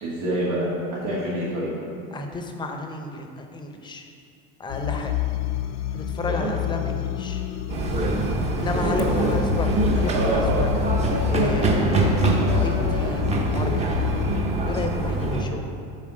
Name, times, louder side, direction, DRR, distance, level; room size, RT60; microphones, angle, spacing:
voice 1, 0.0-1.7 6.3-6.5 8.8-9.3 10.1-10.6, right 1 dB, 80° right, -7 dB, 1.8 m, -26 dB
voice 2, 2.1-4.1 4.6-5.1 5.9-7.4 8.6-10.7 11.3-14.1 14.7-15.7, left 3 dB, 15° left, 4 dB, 0.6 m, -32 dB
sound 1, 4.7-14.4, left 12 dB, 90° left, 0.5 m, -28 dB
sound 2, 7.7-15.4, right 2 dB, 25° right, 0.7 m, -24 dB
7.3 x 4.2 x 6.4 m, 2.4 s
supercardioid pair, 140°, 29 cm